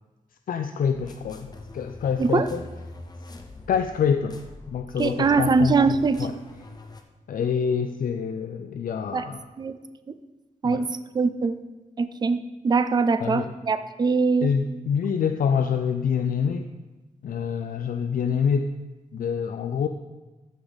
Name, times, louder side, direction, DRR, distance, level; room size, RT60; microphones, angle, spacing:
voice 1, 0.5-2.7 3.7-4.4 4.7-6.3 7.3-9.4 10.6-10.9 13.2-13.5 14.4-16.7 17.2-18.7 19.1-19.9, left 7 dB, 80° left, 7 dB, 0.4 m, -26 dB
sound 1, 0.9-7.0, left 2 dB, 30° left, 0.7 m, -43 dB
voice 2, 5.0-6.2 9.1-9.3 9.6-9.8 10.6-10.9 11.1-11.6 12.0-14.5, right 4 dB, 30° right, 11 dB, 0.4 m, -22 dB
14.0 x 5.0 x 4.0 m, 1.1 s
wide cardioid pair, 170°, 14 cm